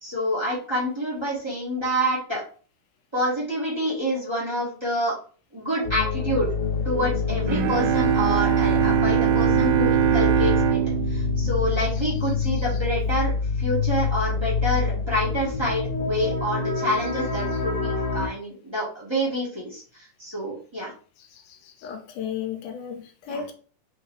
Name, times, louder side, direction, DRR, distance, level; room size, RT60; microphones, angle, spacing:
voice 1, 0.0-2.4 3.1-5.2 5.5-6.5 6.8-10.8 11.1-13.3 13.6-20.9 23.3-23.4, equal, 35° right, -7 dB, 0.4 m, -27 dB
sound 1, 5.8-18.3, left 5 dB, 60° left, 1.8 m, -26 dB
Bowed string instrument, 7.5-12.6, right 12 dB, 85° right, 2.4 m, -23 dB
voice 2, 21.3-23.5, left 7 dB, 80° left, 5 dB, 2.0 m, -34 dB
5.8 x 3.2 x 2.6 m, 0.40 s
omnidirectional pair, 4.0 m